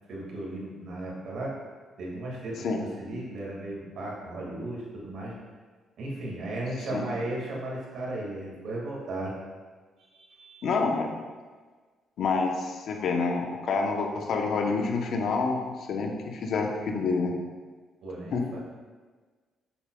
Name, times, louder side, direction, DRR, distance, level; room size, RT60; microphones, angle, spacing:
voice 1, 0.1-1.5 2.0-5.3 6.0-9.3 10.1-10.6 18.0-18.6, right 1 dB, 70° right, -4 dB, 1.8 m, -35 dB
voice 2, 10.6-11.2 12.2-17.3 18.3-18.5, left 4 dB, 70° left, 2 dB, 0.8 m, -28 dB
6.9 x 6.0 x 2.3 m, 1.4 s
cardioid pair, 90°, 0 cm